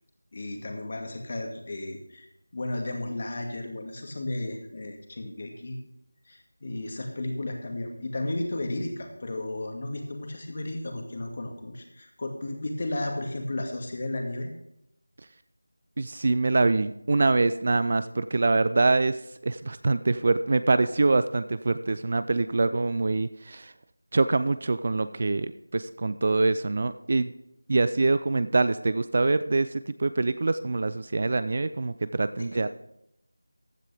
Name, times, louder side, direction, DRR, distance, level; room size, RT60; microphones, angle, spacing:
voice 1, 0.3-2.3 2.5-5.8 6.3-14.5 32.4-32.6, left 1 dB, 35° left, 3 dB, 2.1 m, -34 dB
voice 2, 16.0-19.2 19.4-23.7 24.1-27.3 27.7-32.7, right 3 dB, 35° right, 13 dB, 0.4 m, -24 dB
15.0 x 10.0 x 3.5 m, 0.80 s
figure-of-eight pair, 175°, 0 cm